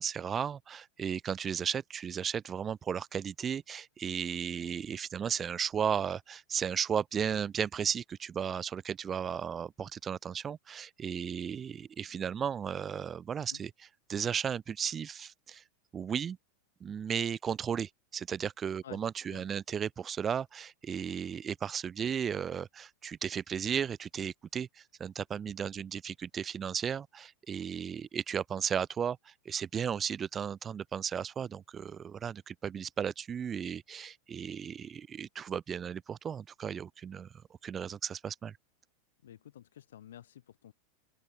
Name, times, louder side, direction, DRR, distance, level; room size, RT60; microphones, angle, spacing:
voice 1, 0.0-15.6 15.9-16.4 16.8-37.3 37.6-38.6, right 7 dB, 25° right, 0.8 m, -35 dB
voice 2, 39.2-40.7, left 11 dB, 85° left, 3.0 m, -51 dB
hypercardioid pair, 110°, 0 cm